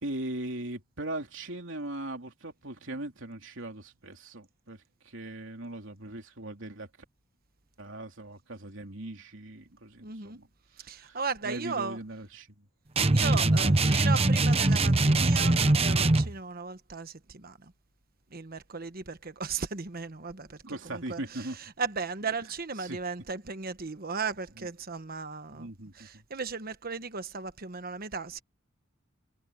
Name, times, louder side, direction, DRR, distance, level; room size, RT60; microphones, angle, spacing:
voice 1, 0.0-6.9 7.8-10.5 10.8-12.6 13.4-13.6 13.8-13.9 20.6-21.6 22.8-23.0 24.6-24.7 25.5-26.2, right 1 dB, 65° right, 3.6 m, -39 dB
voice 2, 10.0-10.4 10.8-12.0 13.1-17.7 18.3-20.6 20.9-21.5 21.8-28.4, right 5 dB, 50° right, 1.2 m, -36 dB
sound 1, 13.0-16.3, right 2 dB, 30° right, 0.9 m, -22 dB
head